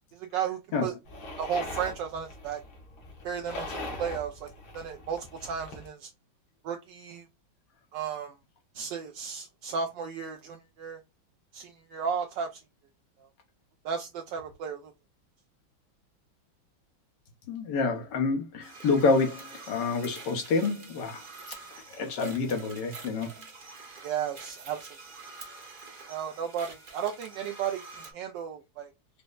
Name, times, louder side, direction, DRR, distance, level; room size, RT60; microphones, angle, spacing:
voice 1, 0.1-0.9 1.4-2.6 3.2-4.5 4.7-6.1 6.6-7.3 7.9-8.4 8.7-11.0 11.5-12.6 13.8-14.9 24.0-24.9 26.1-28.9, right 7 dB, 75° right, 1.2 m, -34 dB
sound 1, 1.0-5.9, left 2 dB, 85° left, 2.0 m, -41 dB
voice 2, 17.5-21.2 21.9-23.3, left 4 dB, 65° left, 1.4 m, -28 dB
sound 2, 18.6-28.1, right 3 dB, 55° right, 0.5 m, -47 dB
5.2 x 2.1 x 2.3 m
omnidirectional pair, 2.2 m